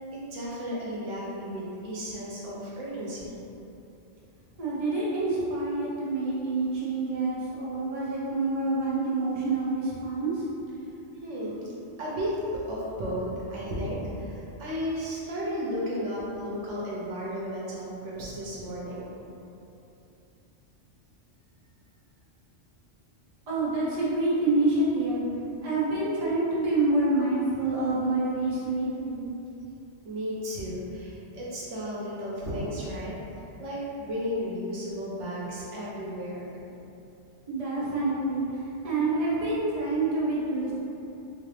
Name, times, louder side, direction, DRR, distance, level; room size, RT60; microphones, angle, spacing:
voice 1, 0.1-3.3 11.2-11.6 12.0-19.1 30.0-33.1 33.6-36.5, equal, 80° right, -6 dB, 1.1 m, -33 dB
voice 2, 4.6-10.4 23.5-25.2 25.6-29.2 37.5-40.7, right 2 dB, 35° right, -8 dB, 0.8 m, -27 dB
3.7 x 2.5 x 3.3 m, 2.8 s
omnidirectional pair, 1.2 m